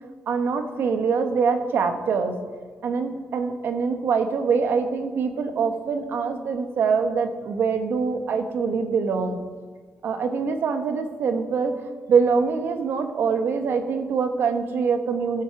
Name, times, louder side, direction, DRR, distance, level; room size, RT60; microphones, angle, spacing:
voice 1, 0.3-2.4 2.8-9.4 10.0-11.8 12.1-15.4, right 5 dB, 70° right, 7 dB, 1.2 m, -24 dB
14.5 x 8.6 x 4.6 m, 1.5 s
cardioid pair, 100°, 4 cm